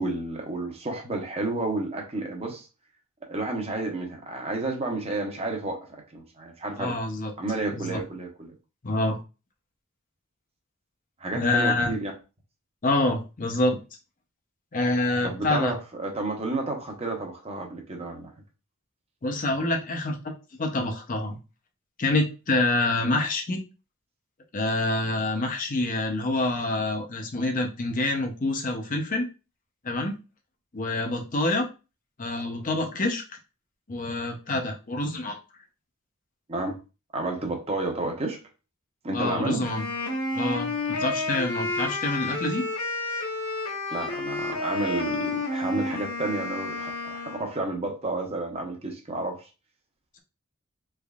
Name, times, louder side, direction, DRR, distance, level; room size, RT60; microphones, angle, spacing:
voice 1, 0.0-2.7 3.3-7.0 7.4-8.5 11.2-12.1 15.2-18.3 36.5-36.8 37.1-38.4 39.0-39.7 43.9-49.4, right 2 dB, 30° right, 2 dB, 0.8 m, -31 dB
voice 2, 6.8-7.3 7.7-8.0 8.8-9.2 11.3-11.9 12.8-13.8 14.7-15.8 19.2-20.3 20.6-21.4 22.0-23.6 24.5-29.3 29.8-30.2 30.7-31.7 32.2-33.2 33.9-35.4 39.1-39.9 40.3-42.7, left 2 dB, 40° left, 3 dB, 0.7 m, -26 dB
Wind instrument woodwind instrument, 39.6-47.5, left 2 dB, 80° left, 0.8 m, -30 dB
3.4 x 3.1 x 2.4 m, 0.31 s
head